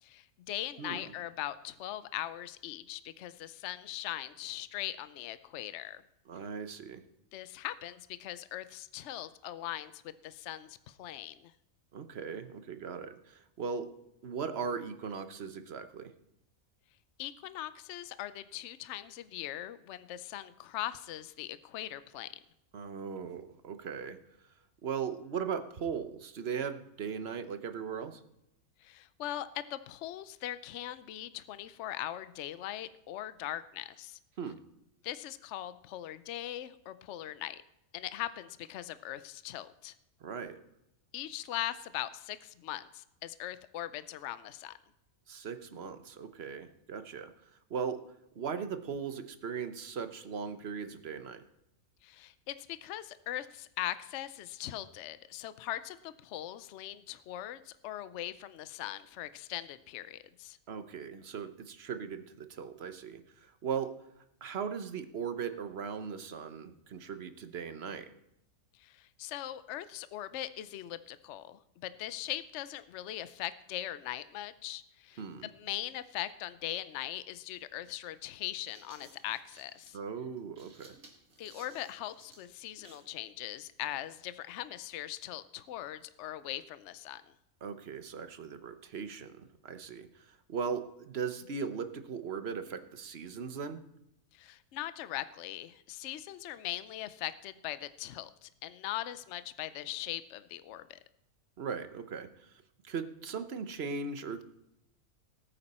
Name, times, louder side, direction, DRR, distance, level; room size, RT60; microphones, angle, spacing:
voice 1, 0.0-6.0 7.3-11.5 17.2-22.4 28.8-34.2 35.0-37.6 37.9-39.9 41.1-44.7 52.0-60.6 68.8-80.0 81.4-87.2 94.3-101.0, left 13 dB, 60° left, 14 dB, 0.8 m, -40 dB
voice 2, 6.3-7.0 11.9-13.9 14.2-16.1 22.7-24.2 24.8-28.2 34.4-34.6 40.2-40.6 45.3-47.3 47.7-48.0 48.4-51.4 60.7-63.9 64.4-68.1 75.2-75.5 79.9-80.9 87.6-93.8 101.6-104.4, right 6 dB, 50° right, 10 dB, 1.1 m, -38 dB
sound 1, 78.4-83.1, right 2 dB, 70° right, 2.5 m, -58 dB
19.0 x 8.8 x 4.3 m, 0.83 s
omnidirectional pair, 1.5 m